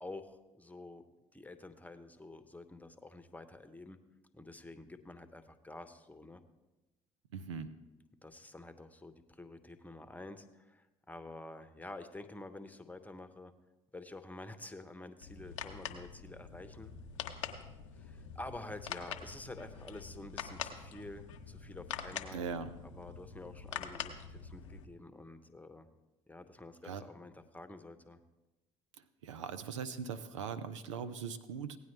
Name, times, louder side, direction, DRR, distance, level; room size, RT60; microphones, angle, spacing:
voice 1, 0.0-1.0 1.3-4.0 4.3-6.4 8.2-13.5 13.9-16.9 18.0-22.4 22.8-25.9 26.3-28.2, left 2 dB, 10° left, 10 dB, 1.0 m, -49 dB
voice 2, 7.3-7.7 22.3-22.7 26.8-27.0 29.2-31.8, right 6 dB, 90° right, 12 dB, 0.5 m, -40 dB
sound 1, 15.2-24.9, left 7 dB, 90° left, 0.7 m, -45 dB
16.5 x 9.2 x 3.3 m, 1.1 s
hypercardioid pair, 60°, 15 cm